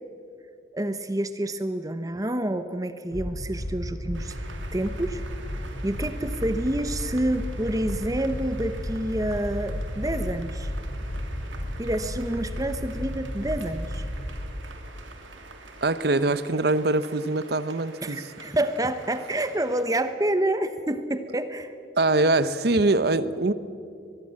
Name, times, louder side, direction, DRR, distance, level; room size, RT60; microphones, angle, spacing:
voice 1, 0.7-4.3 4.7-5.2 5.8-10.7 11.8-14.0 18.0-21.7, right 1 dB, 20° right, 10 dB, 0.8 m, -28 dB
sound 1, 3.1-14.4, equal, 35° left, 7.4 m, -33 dB
sound 2, 4.1-19.8, right 3 dB, 85° right, 2.8 m, -46 dB
voice 2, 15.8-18.2 22.0-23.5, right 2 dB, 55° right, 14 dB, 0.8 m, -23 dB
24.0 x 21.0 x 7.5 m, 2.5 s
head